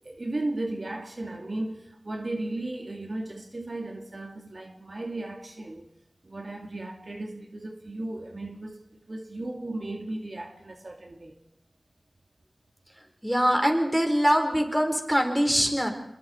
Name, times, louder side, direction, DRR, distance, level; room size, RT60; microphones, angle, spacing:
voice 1, 0.0-5.9 6.2-11.4, right 2 dB, 60° right, 2.4 m, -35 dB
voice 2, 13.2-15.9, equal, 5° right, 4.6 m, -23 dB
27.0 x 22.0 x 4.5 m
wide cardioid pair, 40°, 0 cm